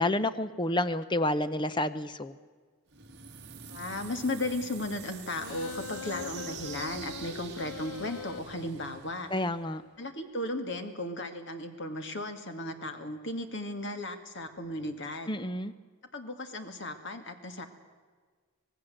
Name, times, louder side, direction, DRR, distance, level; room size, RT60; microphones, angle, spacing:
voice 1, 0.0-2.3 9.3-9.8 15.3-15.7, left 1 dB, 20° left, 13 dB, 0.7 m, -29 dB
sound 1, 2.9-9.8, right 6 dB, 50° right, 2.1 m, -46 dB
voice 2, 3.7-9.3 10.0-15.3 16.1-17.7, left 1 dB, 55° left, 7 dB, 2.2 m, -36 dB
sound 2, 5.4-8.4, left 6 dB, 70° left, 0.7 m, -41 dB
25.5 x 18.5 x 7.7 m, 1.5 s
head